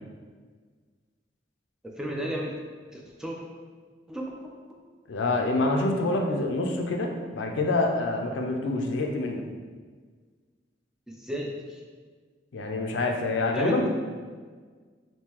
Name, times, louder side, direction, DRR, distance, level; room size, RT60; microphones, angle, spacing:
voice 1, 2.0-2.5 2.9-3.4 4.1-4.5 11.1-11.8 13.5-13.9, equal, 5° right, -2 dB, 0.4 m, -33 dB
voice 2, 5.1-9.4 12.5-13.9, left 2 dB, 80° left, 3 dB, 0.4 m, -26 dB
3.6 x 2.6 x 2.9 m, 1.5 s
head